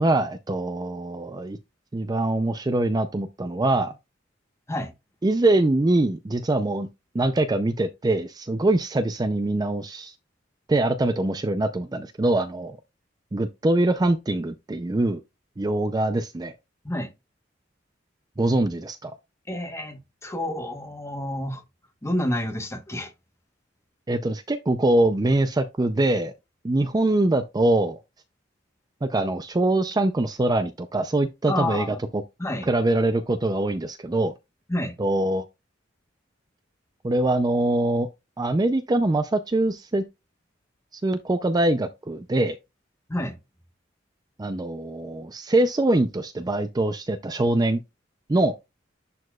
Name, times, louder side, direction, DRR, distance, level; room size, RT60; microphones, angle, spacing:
voice 1, 0.0-1.6 1.9-4.0 5.2-6.9 7.1-10.1 10.7-12.8 13.3-15.2 15.6-16.5 18.4-19.2 24.1-26.3 26.6-28.0 29.0-32.2 32.7-34.3 35.0-35.4 37.0-38.1 38.4-40.1 40.9-42.6 44.4-47.8 48.3-48.6, right 2 dB, 20° right, 0.4 m, -23 dB
voice 2, 19.5-21.6 22.0-23.1 31.5-32.0 32.4-32.7 34.7-35.0 43.1-43.4, left 1 dB, 15° left, 1.1 m, -29 dB
10.5 x 4.3 x 2.3 m
head